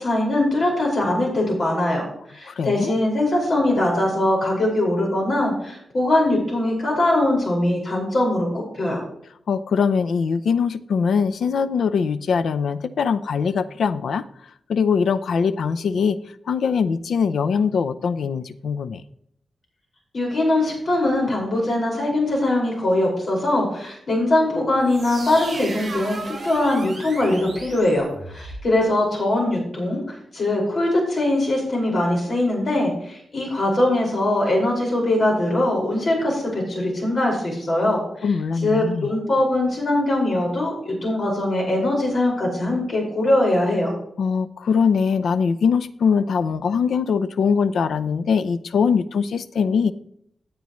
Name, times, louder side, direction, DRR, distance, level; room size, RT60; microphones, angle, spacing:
voice 1, 0.0-9.0 20.1-38.3 38.6-43.9, left 1 dB, 50° left, -1 dB, 5.4 m, -22 dB
voice 2, 2.5-2.9 9.5-14.2 14.7-16.2 16.5-19.0 37.8-37.9 38.2-39.2 44.2-49.9, left 6 dB, 80° left, 14 dB, 0.6 m, -22 dB
sound 1, 24.8-28.6, right 3 dB, 35° right, 5.7 m, -36 dB
16.5 x 8.8 x 3.1 m, 0.71 s
wide cardioid pair, 115°, 0 cm